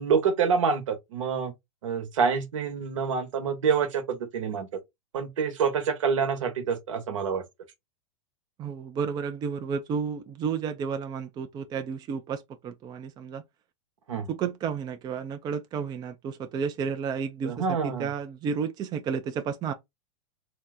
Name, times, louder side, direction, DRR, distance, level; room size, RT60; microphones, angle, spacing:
voice 1, 0.0-1.5 1.8-4.7 5.1-7.4 14.1-14.3 17.4-18.1, right 6 dB, 80° right, 1.0 m, -27 dB
voice 2, 8.6-13.4 14.3-19.7, right 6 dB, 25° right, 0.4 m, -32 dB
2.7 x 2.1 x 3.4 m
hypercardioid pair, 115°, 16 cm